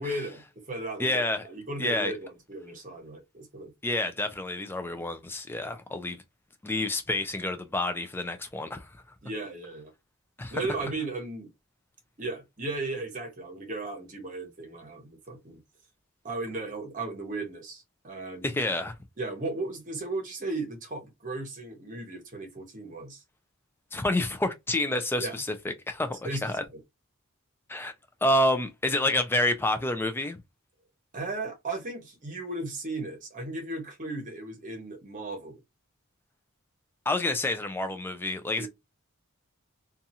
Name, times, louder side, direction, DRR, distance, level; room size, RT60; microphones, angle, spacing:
voice 1, 0.0-3.7 9.2-9.9 10.5-11.5 12.2-15.6 16.2-18.5 19.2-23.2 25.2-25.3 26.2-26.8 31.1-35.6 38.6-38.7, right 2 dB, 35° right, 0.8 m, -36 dB
voice 2, 1.0-1.4 1.8-2.1 3.8-6.2 6.6-8.9 10.4-10.6 18.4-18.9 23.9-26.6 27.7-27.9 28.2-30.4 37.1-38.7, left 1 dB, 10° left, 0.3 m, -28 dB
2.7 x 2.4 x 2.7 m
head